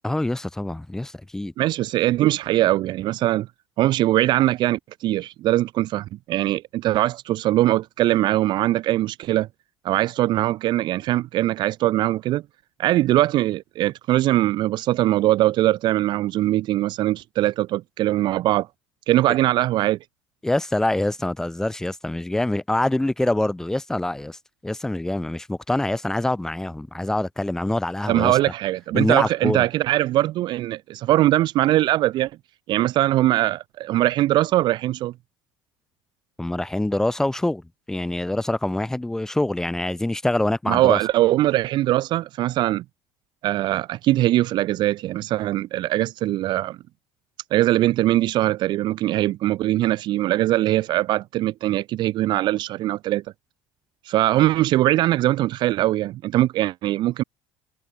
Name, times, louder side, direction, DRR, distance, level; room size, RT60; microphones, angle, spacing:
voice 1, 0.0-1.5 20.4-28.4 28.9-29.7 36.4-41.0, left 1 dB, 5° left, 3.8 m, -25 dB
voice 2, 1.6-3.5 3.8-9.5 9.8-12.4 12.8-18.7 19.1-20.0 28.1-32.3 32.7-35.1 40.7-42.8 43.4-46.8 47.5-53.2 54.0-57.2, right 15 dB, 45° right, 1.1 m, -21 dB
cardioid pair, 165°, 11 cm